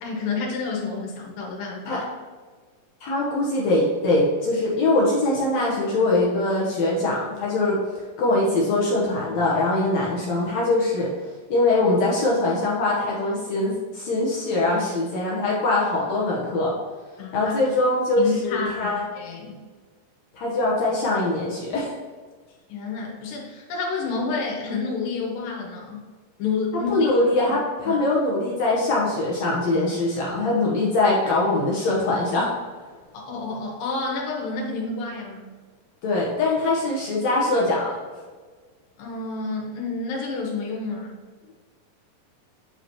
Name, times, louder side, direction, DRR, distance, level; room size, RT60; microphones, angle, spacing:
voice 1, 0.0-2.0 17.2-17.5 18.2-19.6 22.7-26.1 26.4-27.1 27.4-27.6 27.8-28.0 33.1-35.5 39.0-41.1, left 4 dB, 90° left, -2 dB, 3.0 m, -29 dB
voice 2, 3.0-7.8 8.2-11.1 11.5-16.7 17.3-19.1 20.4-21.9 26.9-32.5 36.0-37.9, left 2 dB, 65° left, -4 dB, 2.0 m, -22 dB
8.3 x 4.8 x 2.9 m, 1.5 s
omnidirectional pair, 4.0 m